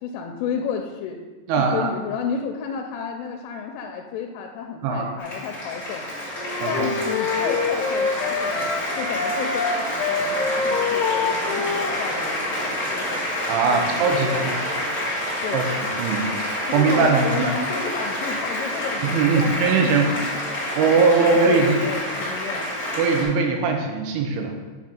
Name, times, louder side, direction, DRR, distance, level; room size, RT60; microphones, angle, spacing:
voice 1, 0.0-1.2 1.6-6.0 6.7-8.7 8.9-13.3 13.7-15.0 15.4-15.7 16.6-20.8 21.2-22.7, left 6 dB, 90° left, 3 dB, 3.1 m, -32 dB
voice 2, 1.5-1.9 4.8-5.1 6.6-6.9 13.5-14.6 15.5-15.6 16.0-16.2 16.7-17.5 19.0-20.1 20.7-21.8 23.0-24.5, right 4 dB, 85° right, 3 dB, 3.3 m, -20 dB
Applause, 5.2-23.2, left 1 dB, 55° left, 0.8 m, -28 dB
sound 1, 6.4-12.2, left 4 dB, 75° left, 2.6 m, -26 dB
7.3 x 6.2 x 4.4 m, 1.3 s
omnidirectional pair, 5.6 m